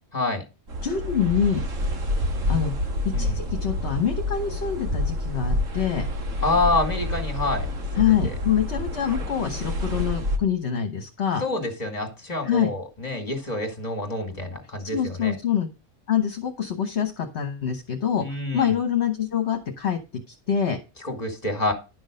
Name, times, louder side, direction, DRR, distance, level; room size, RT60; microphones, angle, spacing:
sound 1, 0.7-10.4, left 1 dB, 60° right, 1.9 m, -28 dB
voice 1, 0.8-1.6 2.5-2.7 3.2-6.1 8.0-11.4 12.4-12.7 14.9-15.7 16.1-18.2 18.5-20.0 20.5-20.8, left 8 dB, 50° left, 5 dB, 1.4 m, -25 dB
voice 2, 6.4-7.7 7.9-8.3 11.4-15.4 18.2-18.8 21.0-21.7, left 2 dB, 30° left, 6 dB, 2.3 m, -27 dB
11.0 x 6.3 x 5.1 m, 0.29 s
omnidirectional pair, 1.5 m